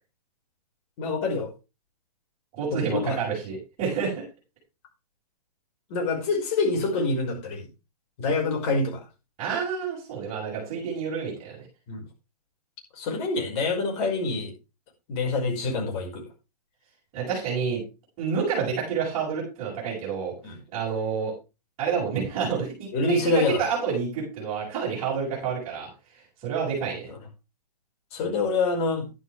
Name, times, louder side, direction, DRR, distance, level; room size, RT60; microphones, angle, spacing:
voice 1, 1.0-1.5 2.7-2.8 3.0-3.2 5.9-7.6 8.2-9.0 11.9-12.0 13.0-14.5 15.1-16.2 20.4-20.6 22.9-23.6 28.1-29.1, left 3 dB, 45° left, 1 dB, 5.5 m, -26 dB
voice 2, 2.5-4.2 9.4-11.6 17.1-17.8 18.2-20.3 20.7-21.3 21.8-25.9 26.4-27.1, right 6 dB, 30° right, -6 dB, 7.2 m, -29 dB
11.5 x 11.0 x 3.4 m, 0.28 s
hypercardioid pair, 125°, 21 cm